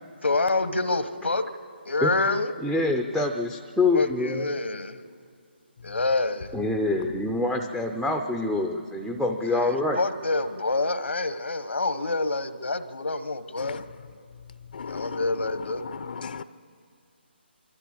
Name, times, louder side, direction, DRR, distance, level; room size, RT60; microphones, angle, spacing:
voice 1, 0.2-1.4 1.8-2.5 3.9-5.0 5.8-6.5 9.5-13.8 14.9-15.8, left 3 dB, 90° left, 1.3 m, -27 dB
voice 2, 2.6-4.5 6.5-10.0, left 2 dB, ahead, 0.5 m, -26 dB
voice 3, 14.7-15.3 15.8-16.4, left 6 dB, 55° left, 0.6 m, -36 dB
23.5 x 13.5 x 8.6 m
figure-of-eight pair, 160°, 6 cm